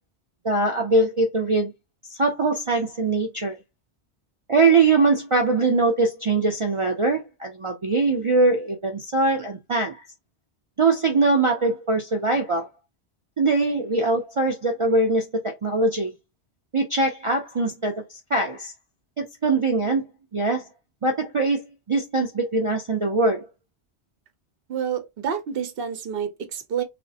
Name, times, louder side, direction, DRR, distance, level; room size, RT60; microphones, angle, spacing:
voice 1, 0.4-1.7 2.1-3.6 4.5-10.0 10.8-12.7 13.4-16.1 16.7-18.7 19.2-20.0 20.3-20.6 21.0-21.6 21.9-23.5, right 3 dB, 45° right, 0.4 m, -22 dB
voice 2, 24.7-26.8, right 8 dB, 65° right, 0.9 m, -28 dB
3.4 x 2.0 x 2.6 m
omnidirectional pair, 1.1 m